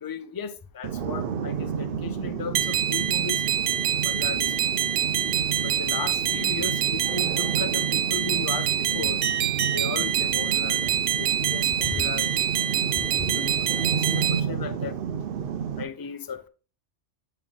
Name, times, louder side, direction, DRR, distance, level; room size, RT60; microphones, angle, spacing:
voice 1, 0.0-3.4 4.0-4.8 5.6-9.2 9.7-10.9 11.2-12.3 13.0-15.0 15.8-16.5, left 5 dB, 35° left, 0.4 m, -36 dB
sound 1, 0.8-15.8, right 7 dB, 55° right, 0.8 m, -31 dB
sound 2, 2.5-14.4, right 9 dB, 85° right, 0.9 m, -26 dB
8.6 x 3.7 x 3.6 m
omnidirectional pair, 1.2 m